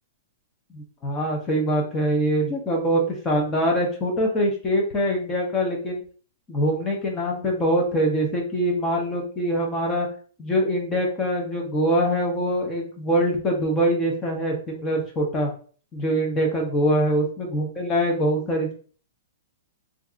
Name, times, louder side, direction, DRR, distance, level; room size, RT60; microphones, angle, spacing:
voice 1, 0.7-6.0 6.5-10.1 10.4-15.5 15.9-18.7, equal, 15° left, 0 dB, 0.7 m, -23 dB
2.7 x 2.4 x 3.6 m, 0.42 s
hypercardioid pair, 170°, 0 cm